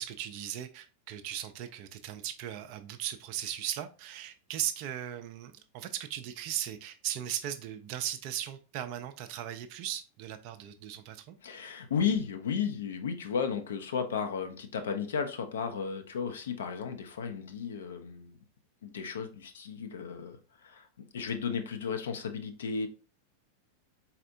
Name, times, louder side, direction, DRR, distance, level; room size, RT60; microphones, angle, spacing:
voice 1, 0.0-11.4, right 11 dB, 45° right, 0.4 m, -37 dB
voice 2, 11.4-18.4 18.8-20.9 21.1-22.9, left 6 dB, 65° left, 0.6 m, -34 dB
4.2 x 4.1 x 2.5 m
figure-of-eight pair, 90°, 0 cm